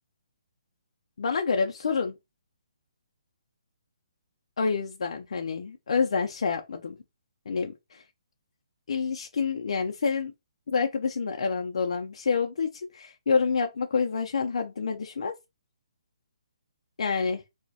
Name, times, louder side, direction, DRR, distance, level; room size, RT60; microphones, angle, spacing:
voice 1, 1.2-2.1 4.6-7.0 7.5-8.0 8.9-10.3 10.7-15.3 17.0-17.4, left 5 dB, 65° left, 0.3 m, -28 dB
2.3 x 2.0 x 2.6 m
hypercardioid pair, 170°, 3 cm